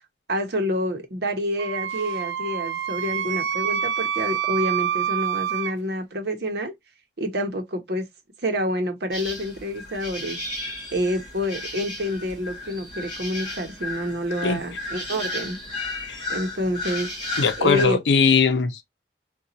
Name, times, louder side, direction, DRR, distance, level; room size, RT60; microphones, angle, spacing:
voice 1, 0.3-6.7 7.2-8.1 8.4-10.4 10.9-15.6 16.3-17.1 17.6-18.0, equal, 65° right, 0.8 m, -28 dB
Wind instrument woodwind instrument, 1.6-5.7, right 9 dB, 80° right, 0.3 m, -27 dB
sound 1, 9.1-17.8, left 2 dB, 30° left, 2.1 m, -34 dB
voice 2, 17.4-18.8, left 5 dB, 85° left, 0.5 m, -20 dB
3.8 x 2.3 x 2.7 m
head